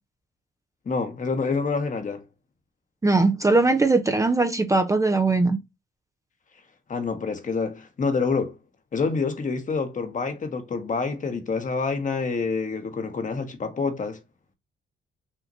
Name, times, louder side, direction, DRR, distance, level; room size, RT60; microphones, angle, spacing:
voice 1, 0.8-2.2 6.9-8.6 8.9-14.2, left 4 dB, 40° left, 1.3 m, -27 dB
voice 2, 3.0-5.6, right 3 dB, 15° right, 0.6 m, -20 dB
5.8 x 2.9 x 2.6 m
cardioid pair, 90°, 20 cm